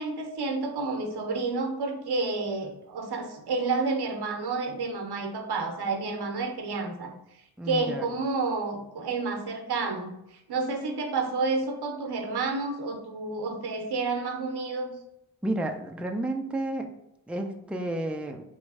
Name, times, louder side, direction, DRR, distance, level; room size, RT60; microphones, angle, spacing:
voice 1, 0.0-7.1 7.7-14.9, right 3 dB, 80° right, 4 dB, 0.8 m, -30 dB
voice 2, 7.6-8.0 15.4-16.9 17.3-18.4, right 1 dB, 5° right, 4 dB, 0.4 m, -31 dB
3.1 x 3.1 x 4.7 m, 0.86 s
cardioid pair, 75°, 38 cm